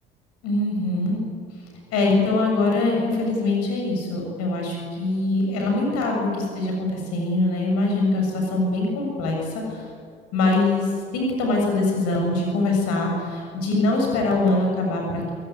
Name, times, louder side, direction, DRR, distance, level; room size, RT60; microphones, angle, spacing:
voice 1, 0.4-1.2 1.9-9.9 10.3-15.3, left 2 dB, 55° left, 1 dB, 7.1 m, -23 dB
27.5 x 18.0 x 9.5 m, 2.2 s
figure-of-eight pair, 55°, 29 cm